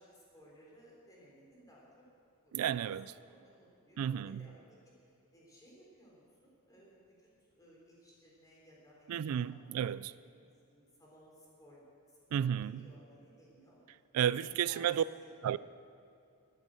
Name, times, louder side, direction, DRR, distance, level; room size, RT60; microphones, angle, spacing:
voice 1, 0.0-1.8 2.4-2.9 3.3-4.6 5.3-10.0 10.3-11.8 12.1-13.8 14.2-15.6, equal, 15° left, 4.0 m, -59 dB
voice 2, 2.5-3.1 4.0-4.5 9.1-10.1 12.3-12.9 14.1-15.0 15.4-15.6, right 9 dB, 80° right, 0.3 m, -32 dB
14.0 x 9.0 x 7.8 m
head